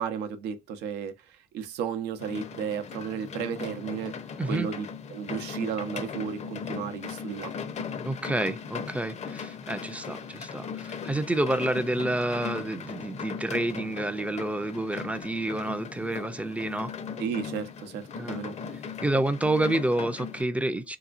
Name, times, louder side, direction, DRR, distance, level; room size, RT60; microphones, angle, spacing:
voice 1, 0.0-4.2 4.4-7.5 17.2-18.5, right 7 dB, 85° right, 0.7 m, -33 dB
sound 1, 2.2-20.4, left 6 dB, 40° left, 0.6 m, -38 dB
voice 2, 4.4-4.7 8.0-16.9 18.1-18.4 19.0-21.0, right 1 dB, 10° right, 0.4 m, -29 dB
3.3 x 2.8 x 2.4 m
cardioid pair, 110°, 17 cm